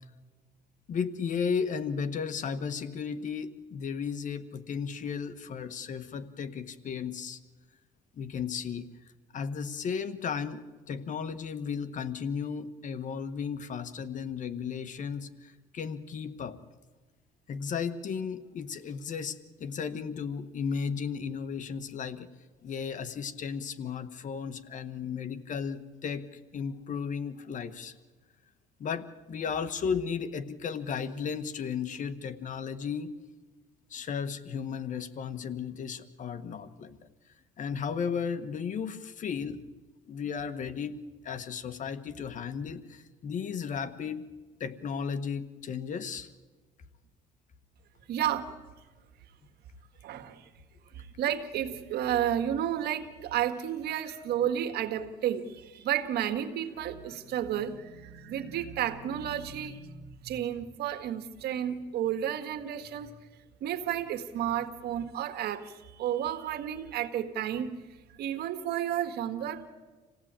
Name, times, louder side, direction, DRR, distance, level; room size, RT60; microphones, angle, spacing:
voice 1, 0.9-7.4 8.2-8.9 9.3-16.5 17.5-22.3 22.6-26.3 26.5-27.9 28.8-33.1 33.9-37.0 37.6-39.6 40.1-41.0 41.2-44.3 44.6-46.3, left 6 dB, 50° left, 11 dB, 1.4 m, -34 dB
voice 2, 48.1-48.5 50.0-50.5 51.0-63.1 63.6-67.8 68.2-69.7, right 10 dB, 70° right, 7 dB, 1.9 m, -32 dB
27.5 x 16.5 x 9.0 m, 1.3 s
cardioid pair, 110°, 17 cm